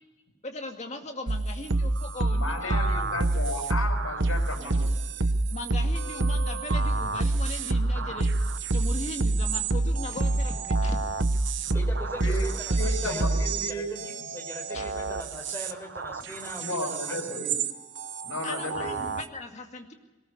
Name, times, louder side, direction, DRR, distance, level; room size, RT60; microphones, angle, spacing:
voice 1, 0.4-3.0 5.5-8.3 8.7-11.0 13.0-13.3 14.7-14.8 18.4-19.9, left 2 dB, 30° left, 4 dB, 2.1 m, -38 dB
sound 1, 1.3-17.7 18.0-19.2, right 2 dB, 55° right, 1.0 m, -27 dB
voice 2, 2.3-4.9 12.2-12.5 12.8-13.9 16.6-17.6 18.2-19.0, left 1 dB, 85° left, 4 dB, 5.9 m, -33 dB
voice 3, 11.6-17.4, equal, 10° left, 3 dB, 4.2 m, -41 dB
22.0 x 19.0 x 6.9 m, 1.2 s
head